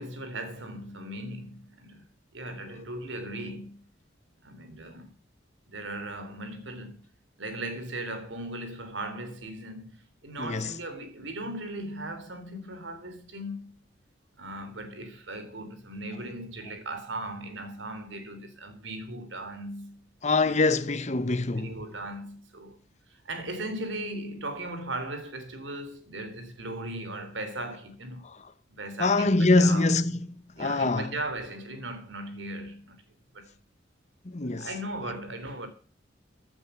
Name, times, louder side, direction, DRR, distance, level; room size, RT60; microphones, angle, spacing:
voice 1, 0.0-2.0 2.3-3.8 4.4-5.1 5.7-7.0 7.4-13.7 14.4-19.9 20.4-20.7 21.6-22.8 23.1-28.3 28.7-29.9 30.5-33.0 33.3-33.5 34.6-35.7, right 1 dB, 80° right, 3.4 m, -38 dB
voice 2, 10.4-10.7 20.2-21.7 29.0-30.1 30.6-31.1 34.2-34.7, left 3 dB, 40° left, 0.9 m, -24 dB
15.5 x 8.8 x 6.8 m
head